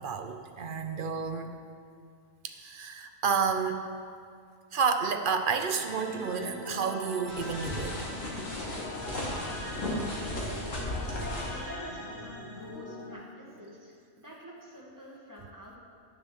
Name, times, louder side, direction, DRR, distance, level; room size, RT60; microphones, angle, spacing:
voice 1, 0.0-1.5 2.4-4.0 4.7-8.0, right 5 dB, 50° right, 6 dB, 0.7 m, -30 dB
sound 1, 5.7-13.1, left 1 dB, 50° left, 2.0 m, -42 dB
sound 2, 7.3-11.6, left 1 dB, 65° left, 2.3 m, -35 dB
voice 2, 9.2-10.8 11.1-15.8, equal, 15° right, -4 dB, 1.8 m, -47 dB
10.0 x 6.9 x 7.2 m, 2.2 s
omnidirectional pair, 1.4 m